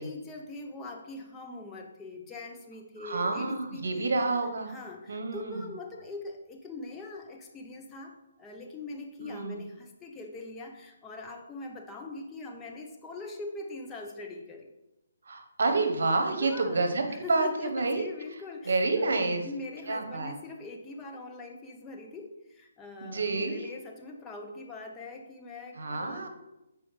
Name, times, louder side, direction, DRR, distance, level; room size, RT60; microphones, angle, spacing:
voice 1, 0.0-4.1 4.7-14.7 16.4-26.3, left 2 dB, 15° left, 1 dB, 0.7 m, -42 dB
voice 2, 3.0-4.7 5.1-5.6 9.2-9.6 15.2-18.1 18.7-19.4 19.9-20.3 23.0-23.6 25.8-26.3, right 3 dB, 70° right, 5 dB, 1.1 m, -29 dB
7.5 x 4.9 x 3.2 m, 0.92 s
hypercardioid pair, 150°, 0 cm